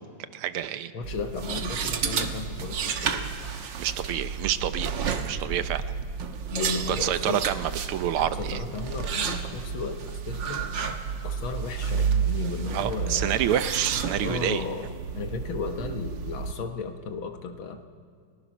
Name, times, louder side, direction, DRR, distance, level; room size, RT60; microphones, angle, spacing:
voice 1, 0.3-0.9 3.8-5.8 6.9-8.6 12.7-14.6, right 11 dB, 80° right, 12 dB, 1.7 m, -28 dB
voice 2, 0.9-3.3 6.5-7.4 8.2-10.6 11.2-13.4 14.2-14.9 15.2-17.8, left 4 dB, 70° left, 6 dB, 2.0 m, -34 dB
sound 1, 1.0-16.5, right 6 dB, 60° right, 1.7 m, -31 dB
29.5 x 18.5 x 6.2 m, 2.2 s
omnidirectional pair, 2.4 m